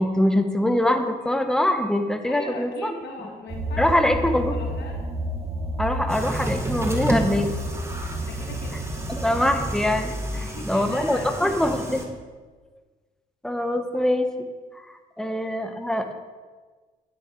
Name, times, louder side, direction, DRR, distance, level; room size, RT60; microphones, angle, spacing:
voice 1, 0.0-2.9 3.8-4.5 5.8-7.5 9.1-12.1 13.4-14.5 14.8-14.9 15.2-16.1, left 1 dB, 5° left, 6 dB, 1.2 m, -23 dB
voice 2, 2.2-5.0 5.4-5.5 8.2-8.8 10.3-11.8 15.2-15.3, left 3 dB, 65° left, 1 dB, 2.0 m, -40 dB
sound 1, 3.5-9.9, equal, 35° right, 1.8 m, -31 dB
sound 2, 6.1-12.0, right 1 dB, 15° right, 1.9 m, -31 dB
9.7 x 9.6 x 4.6 m, 1.4 s
supercardioid pair, 70°, 19 cm